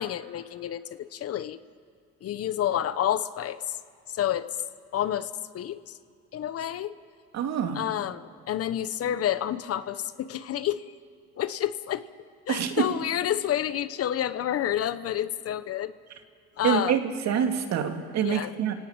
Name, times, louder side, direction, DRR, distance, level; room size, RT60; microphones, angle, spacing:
voice 1, 0.0-1.6 2.2-3.8 4.1-4.5 4.9-6.0 6.3-6.9 7.7-10.9 11.4-12.0 12.5-15.9 16.6-17.0 18.2-18.5, left 11 dB, 50° left, 14 dB, 0.9 m, -29 dB
voice 2, 7.3-7.8 12.5-12.8 16.6-18.7, right 8 dB, 60° right, 5 dB, 2.4 m, -26 dB
29.5 x 17.5 x 8.8 m, 2.2 s
cardioid pair, 100°, 31 cm